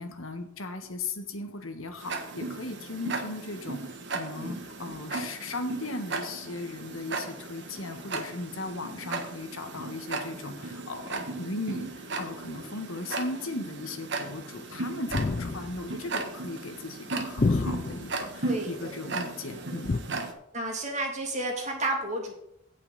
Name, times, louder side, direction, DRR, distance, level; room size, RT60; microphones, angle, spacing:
voice 1, 0.0-20.0, left 2 dB, 85° left, 6 dB, 1.5 m, -37 dB
Tick-tock, 2.0-20.3, right 3 dB, 60° right, 1.4 m, -36 dB
voice 2, 4.3-5.0 18.4-19.2 20.5-22.3, right 1 dB, 35° right, 0 dB, 2.6 m, -32 dB
sound 1, 15.1-15.9 17.4-18.2 19.8-20.0, left 3 dB, 35° left, 0.4 m, -28 dB
17.0 x 5.8 x 4.1 m, 0.76 s
head